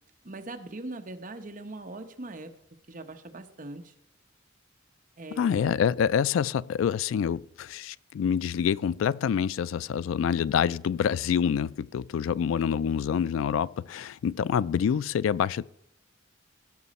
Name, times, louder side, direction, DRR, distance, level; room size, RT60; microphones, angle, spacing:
voice 1, 0.2-2.5 2.9-3.9 5.2-5.7, right 2 dB, 40° right, 0.9 m, -41 dB
voice 2, 5.4-15.7, left 7 dB, 70° left, 0.3 m, -26 dB
16.5 x 6.1 x 4.2 m
head